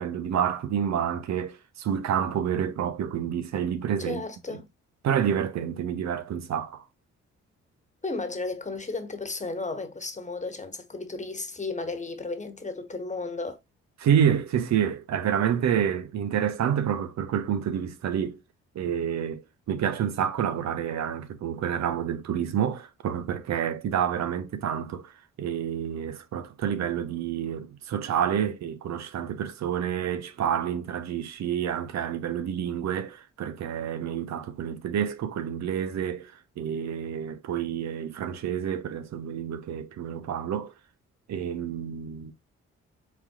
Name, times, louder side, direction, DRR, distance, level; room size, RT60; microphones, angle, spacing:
voice 1, 0.0-4.2 4.5-4.6 5.0-6.8 14.0-18.4 18.7-19.4 19.7-40.7 41.3-42.3, right 9 dB, 65° right, 0.7 m, -28 dB
voice 2, 4.0-4.7 8.0-13.6, left 3 dB, 25° left, 1.3 m, -34 dB
4.3 x 4.0 x 2.3 m
supercardioid pair, 50°, 29 cm